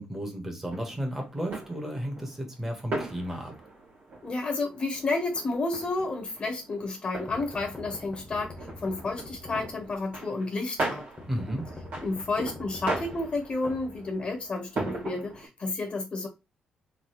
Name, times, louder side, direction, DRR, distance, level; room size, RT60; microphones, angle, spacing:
voice 1, 0.0-3.5 11.3-11.7, equal, 15° right, 1.5 m, -33 dB
sound 1, 0.7-15.5, right 2 dB, 70° right, 2.4 m, -39 dB
voice 2, 4.2-11.0 12.0-16.3, left 3 dB, 35° left, 1.0 m, -31 dB
sound 2, 7.3-10.2 11.2-14.5, left 2 dB, 10° left, 1.1 m, -45 dB
4.0 x 3.6 x 3.2 m
cardioid pair, 125°, 3 cm